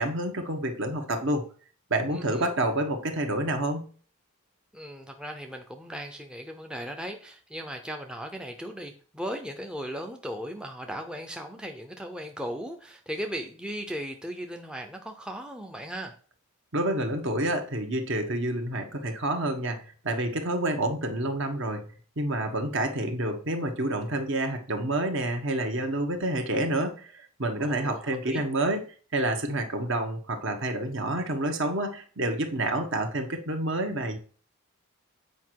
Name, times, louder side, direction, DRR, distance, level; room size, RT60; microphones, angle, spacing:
voice 1, 0.0-1.4 1.9-3.9 16.7-21.8 22.2-28.8 29.1-34.2, right 1 dB, 55° right, 5 dB, 1.4 m, -28 dB
voice 2, 2.1-2.5 4.7-16.1 27.6-28.4, equal, 5° right, 3 dB, 0.7 m, -37 dB
8.2 x 5.2 x 4.7 m, 0.41 s
head